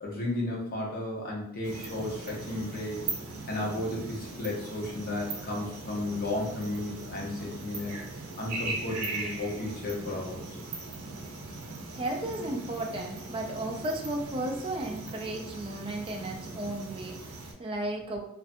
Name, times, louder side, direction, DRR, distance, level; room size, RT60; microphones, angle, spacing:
voice 1, 0.0-3.1 3.5-8.0 8.4-10.4, left 1 dB, 45° left, -2 dB, 0.6 m, -33 dB
sound 1, 1.6-17.5, right 3 dB, 90° right, 0.6 m, -40 dB
voice 2, 11.9-18.2, right 1 dB, 25° right, 1 dB, 0.3 m, -34 dB
2.5 x 2.4 x 2.5 m, 0.76 s
head